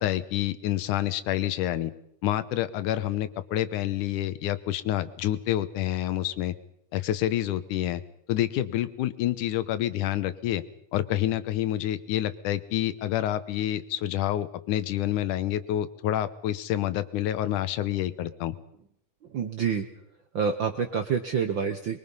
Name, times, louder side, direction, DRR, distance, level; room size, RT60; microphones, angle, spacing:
voice 1, 0.0-1.9 2.2-6.6 6.9-8.0 8.3-10.6 10.9-18.6, left 13 dB, 85° left, 14 dB, 2.5 m, -28 dB
voice 2, 19.3-19.9 20.3-22.0, right 6 dB, 65° right, 7 dB, 1.2 m, -27 dB
23.5 x 22.0 x 5.5 m, 0.72 s
omnidirectional pair, 3.5 m